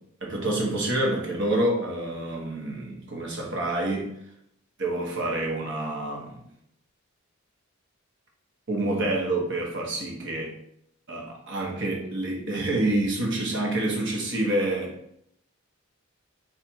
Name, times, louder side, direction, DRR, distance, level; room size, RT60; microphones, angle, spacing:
voice 1, 0.2-4.1 4.8-6.4 8.7-10.6 11.1-14.9, right 1 dB, 55° right, 0 dB, 1.1 m, -27 dB
4.3 x 2.5 x 4.6 m, 0.74 s
head